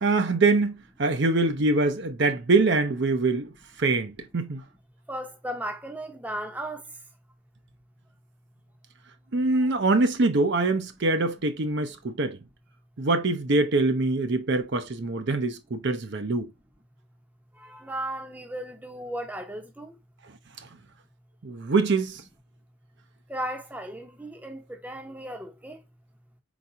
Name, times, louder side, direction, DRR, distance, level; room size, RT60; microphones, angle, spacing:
voice 1, 0.0-3.5 3.8-4.6 9.3-12.4 13.0-16.5 20.6-20.7 21.4-22.2, right 3 dB, 50° right, 0.6 m, -24 dB
voice 2, 5.1-6.8 17.6-19.9 23.3-25.8, right 1 dB, 5° right, 0.7 m, -35 dB
4.6 x 4.0 x 2.8 m
head